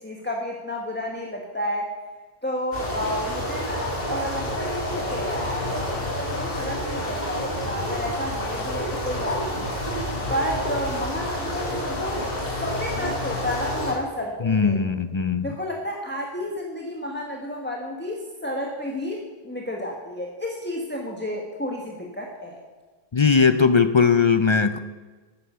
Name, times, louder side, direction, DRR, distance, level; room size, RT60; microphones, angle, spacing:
voice 1, 0.0-1.9 2.4-9.9 10.3-12.3 12.6-14.8 15.4-22.6, left 1 dB, 10° left, -1 dB, 1.3 m, -31 dB
sound 1, 2.7-13.9, left 1 dB, 65° left, 3.6 m, -29 dB
voice 2, 14.4-15.6 23.1-24.8, left 5 dB, 40° left, 11 dB, 0.4 m, -19 dB
10.0 x 9.5 x 6.7 m, 1.3 s
omnidirectional pair, 1.0 m